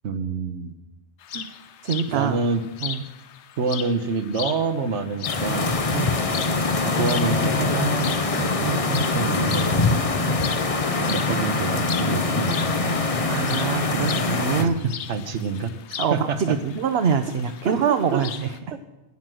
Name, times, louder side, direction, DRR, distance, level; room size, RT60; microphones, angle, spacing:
voice 1, 0.0-0.7 2.1-2.6 3.6-5.7 6.8-10.0 11.1-13.0 14.6-14.7 15.1-15.7 16.1-16.6 17.6-17.7 18.1-18.2 18.7-18.8, right 4 dB, 85° right, 10 dB, 1.3 m, -27 dB
sound 1, 1.2-18.6, left 9 dB, 80° left, 1.0 m, -38 dB
voice 2, 1.8-2.4 2.8-3.0 5.9-6.2 13.2-14.7 16.0-18.6, right 7 dB, 65° right, 8 dB, 0.9 m, -24 dB
sound 2, 5.2-14.6, left 3 dB, 35° left, 0.8 m, -23 dB
11.5 x 9.3 x 7.6 m, 1.0 s
omnidirectional pair, 1.2 m